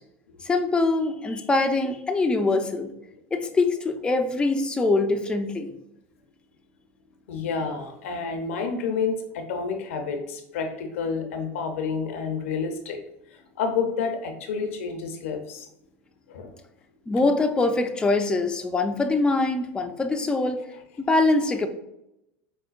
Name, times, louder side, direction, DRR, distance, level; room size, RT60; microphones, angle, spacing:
voice 1, 0.4-2.9 3.3-5.7 17.1-20.6 21.0-21.7, left 3 dB, 15° left, 5 dB, 0.4 m, -23 dB
voice 2, 7.3-13.0 13.3-15.7 16.3-16.5, left 5 dB, 85° left, 5 dB, 0.6 m, -29 dB
4.8 x 2.1 x 2.4 m, 0.84 s
supercardioid pair, 105°, 7 cm